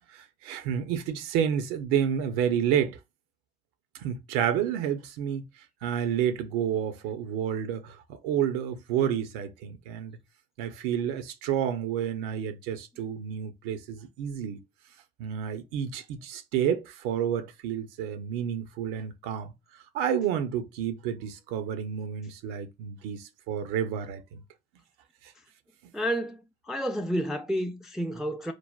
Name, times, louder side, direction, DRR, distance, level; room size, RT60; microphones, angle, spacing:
voice 1, 0.1-3.0 3.9-5.5 5.8-10.2 10.6-14.6 15.2-24.4, right 9 dB, 90° right, 0.5 m, -30 dB
voice 2, 25.9-28.5, equal, ahead, 0.3 m, -30 dB
3.2 x 2.1 x 2.3 m
supercardioid pair, 65°, 21 cm